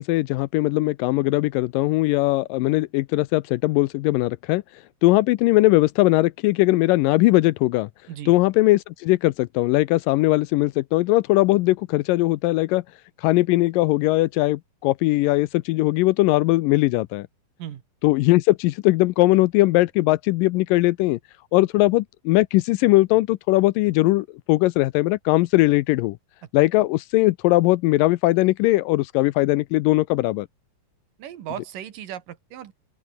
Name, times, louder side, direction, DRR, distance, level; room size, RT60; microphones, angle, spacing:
voice 1, 0.0-4.6 5.0-7.9 8.3-12.8 13.2-17.3 18.0-21.2 21.5-26.2 26.5-30.5, left 19 dB, 80° left, 2.2 m, -20 dB
voice 2, 31.2-32.7, right 10 dB, 70° right, 3.3 m, -36 dB
open air
omnidirectional pair, 4.0 m